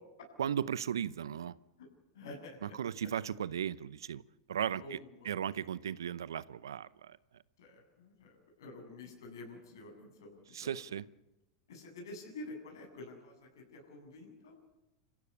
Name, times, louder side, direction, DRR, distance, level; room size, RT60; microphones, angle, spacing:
voice 1, 0.4-1.6 2.6-4.2 4.5-5.0 5.2-7.2 10.5-11.1, right 9 dB, 80° right, 19 dB, 0.8 m, -36 dB
voice 2, 2.1-2.7 4.8-5.4 7.6-10.7 11.7-14.6, left 2 dB, 75° left, 3 dB, 7.7 m, -49 dB
27.5 x 15.5 x 8.4 m, 0.98 s
hypercardioid pair, 100°, 2 cm